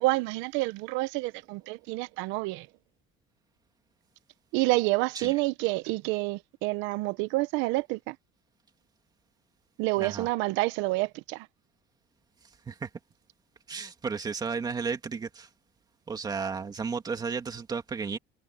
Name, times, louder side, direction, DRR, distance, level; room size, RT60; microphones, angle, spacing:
voice 1, 0.0-2.7 4.5-8.2 9.8-11.5, right 21 dB, 75° right, 0.9 m, -28 dB
voice 2, 10.0-10.3 12.7-12.9 13.7-15.5 16.1-18.2, right 5 dB, 20° right, 2.7 m, -33 dB
cardioid pair, 165°, 20 cm